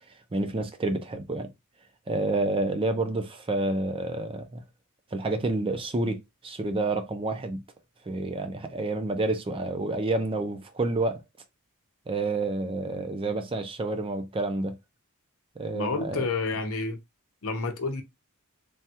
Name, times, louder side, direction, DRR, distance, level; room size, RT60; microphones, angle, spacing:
voice 1, 0.3-1.5 2.1-4.6 5.1-7.6 8.1-11.2 12.1-14.8 15.6-16.2, right 2 dB, 25° right, 0.5 m, -29 dB
voice 2, 15.7-17.0 17.4-18.0, left 3 dB, 65° left, 0.7 m, -29 dB
3.4 x 2.3 x 2.7 m
head